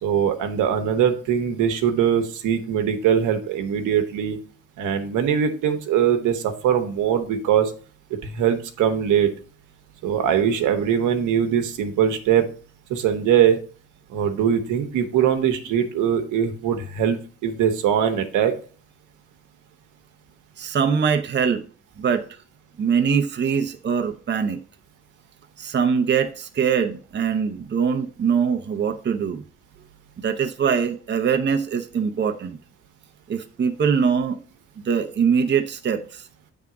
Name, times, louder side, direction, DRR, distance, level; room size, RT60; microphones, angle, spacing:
voice 1, 0.0-4.4 4.8-7.7 8.1-9.3 10.0-12.4 12.9-13.6 14.1-17.2 17.4-18.5, right 8 dB, 85° right, 1.1 m, -21 dB
voice 2, 20.6-21.6 22.0-22.3 22.8-24.6 25.6-29.4 30.2-32.6 33.3-34.4 34.8-36.3, right 6 dB, 35° right, 0.8 m, -22 dB
8.1 x 3.6 x 4.9 m
cardioid pair, 90°, 30 cm